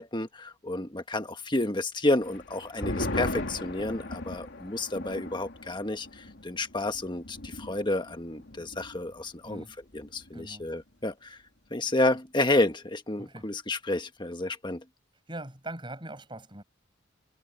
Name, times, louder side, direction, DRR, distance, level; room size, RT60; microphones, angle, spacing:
voice 1, 0.0-9.6 9.9-11.4 11.7-14.8, left 2 dB, 25° left, 1.5 m, -30 dB
sound 1, 2.2-9.2 9.4-9.5 9.9-10.4, left 1 dB, 60° left, 3.1 m, -38 dB
voice 2, 9.4-9.8 10.3-10.7 13.2-13.5 15.3-16.6, right 1 dB, 25° right, 7.4 m, -41 dB
head